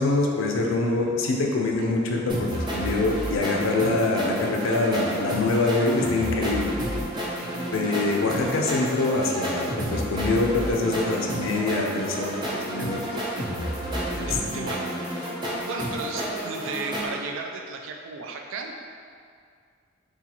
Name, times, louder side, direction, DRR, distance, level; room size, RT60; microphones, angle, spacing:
voice 1, 0.0-6.8 7.7-13.0 14.1-14.8, left 2 dB, 75° left, 0 dB, 0.4 m, -25 dB
sound 1, 2.3-17.1, equal, 20° right, 0.5 m, -30 dB
voice 2, 14.2-15.1 15.6-18.8, right 4 dB, 75° right, 2 dB, 0.4 m, -35 dB
3.9 x 2.4 x 2.8 m, 2.2 s
head